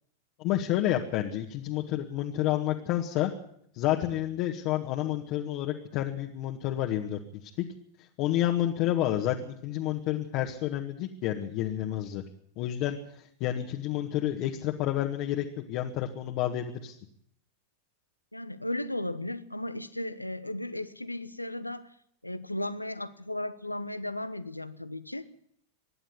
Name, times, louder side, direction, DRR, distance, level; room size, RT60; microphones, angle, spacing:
voice 1, 0.4-3.3 3.7-7.2 8.2-12.2 12.6-13.0 13.4-17.0, left 13 dB, 40° left, 1 dB, 1.8 m, -29 dB
voice 2, 18.3-21.9 22.2-25.4, left 1 dB, 85° left, 14 dB, 1.1 m, -35 dB
25.0 x 11.0 x 9.6 m, 0.69 s
figure-of-eight pair, 90°, 0 cm